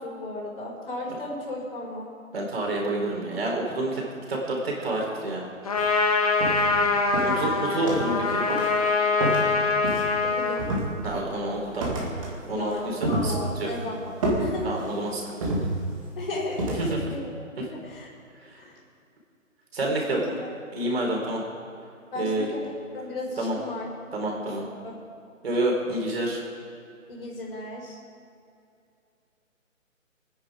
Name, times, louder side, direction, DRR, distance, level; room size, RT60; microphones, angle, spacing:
voice 1, 0.0-2.1 6.5-6.9 10.2-10.6 12.4-14.1 14.4-14.8 16.2-17.3 17.7-18.1 18.6-18.7 19.8-20.5 22.1-22.6 22.9-23.9 24.2-24.4 24.8-25.0 27.1-28.0, left 2 dB, 45° left, -2 dB, 4.5 m, -35 dB
voice 2, 2.3-5.5 7.2-8.4 11.0-11.9 12.5-13.7 14.6-15.5 16.8-17.0 18.5-18.6 19.7-20.2 20.7-21.4 22.2-22.5 23.4-23.6 24.1-24.6 25.4-26.4, right 1 dB, 45° right, -1 dB, 4.1 m, -28 dB
Trumpet, 5.6-10.7, left 4 dB, 30° left, 1.1 m, -24 dB
sound 1, 5.7-5.9 6.4-6.8 7.1-8.2 8.5-8.8 9.2-10.3 10.6-11.3 11.8-12.4 12.7-13.8 14.2-15.0 15.4-16.1 16.6-16.9, right 1 dB, 25° right, 2.0 m, -29 dB
23.5 x 10.0 x 5.0 m, 2.6 s
hypercardioid pair, 170°, 40 cm